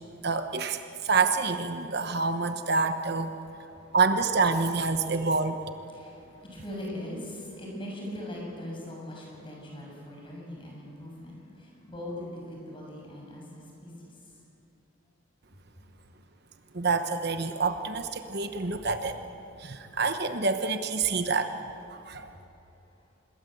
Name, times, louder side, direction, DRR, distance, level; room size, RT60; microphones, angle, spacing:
voice 1, 0.2-3.3 3.9-5.6 16.7-19.2 19.6-21.6 21.9-22.3, right 4 dB, 55° right, 8 dB, 1.1 m, -27 dB
voice 2, 5.9-14.1, left 1 dB, 25° left, -2 dB, 7.0 m, -40 dB
26.5 x 21.5 x 8.0 m, 2.8 s
head